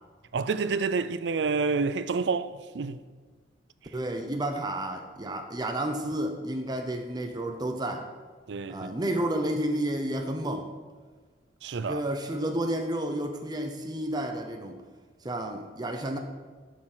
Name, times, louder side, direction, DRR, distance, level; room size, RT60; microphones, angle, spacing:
voice 1, 0.3-3.0 8.5-8.9 11.6-12.0, right 4 dB, 70° right, 0.5 m, -28 dB
voice 2, 3.9-8.1 8.7-10.7 11.9-14.8 15.2-16.2, right 1 dB, 25° right, 0.8 m, -31 dB
12.0 x 6.6 x 6.1 m
head